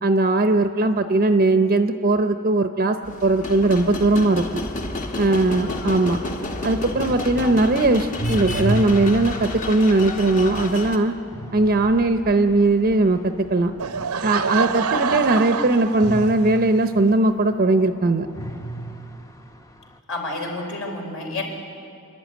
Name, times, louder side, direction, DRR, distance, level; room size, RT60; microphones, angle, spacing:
voice 1, 0.0-3.0 3.2-4.6 5.2-6.2 6.6-11.1 11.5-13.7 14.2-18.3, right 2 dB, 40° right, 7 dB, 0.7 m, -19 dB
sound 1, 3.0-11.0, left 2 dB, 35° left, 1.3 m, -31 dB
sound 2, 4.4-14.7 16.0-17.9 18.3-19.9, right 1 dB, 15° left, 0.8 m, -34 dB
Laughter / Crowd, 13.8-16.6, right 5 dB, 80° right, 0.8 m, -26 dB
voice 2, 20.1-21.4, left 2 dB, 70° left, 1 dB, 4.4 m, -30 dB
28.0 x 11.5 x 9.2 m, 2.5 s
head